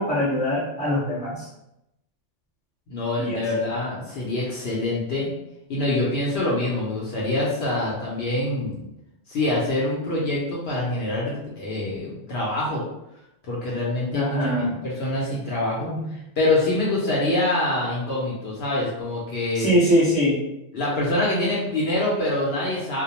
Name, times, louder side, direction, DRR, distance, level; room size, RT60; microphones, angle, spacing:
voice 1, 0.0-1.5 3.2-3.4 14.1-14.8 15.8-16.1 19.5-20.4, equal, 5° left, -8 dB, 0.7 m, -23 dB
voice 2, 2.9-5.3 5.7-8.8 9.3-12.8 13.4-15.9 16.4-19.7 20.7-23.0, left 1 dB, 65° left, -5 dB, 0.8 m, -25 dB
2.2 x 2.1 x 2.8 m, 0.85 s
omnidirectional pair, 1.3 m